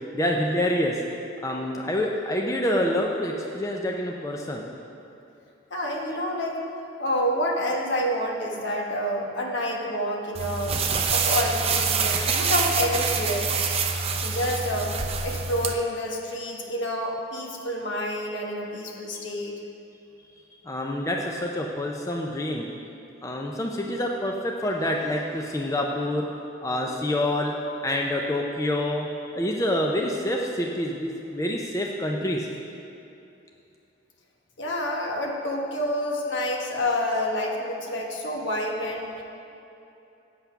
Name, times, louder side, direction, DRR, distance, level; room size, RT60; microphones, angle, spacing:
voice 1, 0.1-1.0 1.4-4.6 20.6-22.7 23.2-26.3 26.6-27.5 27.8-32.5, left 1 dB, 15° left, 0 dB, 0.5 m, -27 dB
voice 2, 5.7-6.6 7.0-10.8 11.1-13.5 14.2-14.9 15.2-19.6 34.6-39.2, left 1 dB, 65° left, 0 dB, 1.2 m, -28 dB
sound 1, 10.3-15.7, right 5 dB, 30° right, 0.5 m, -26 dB
8.1 x 8.0 x 5.7 m, 2.8 s
head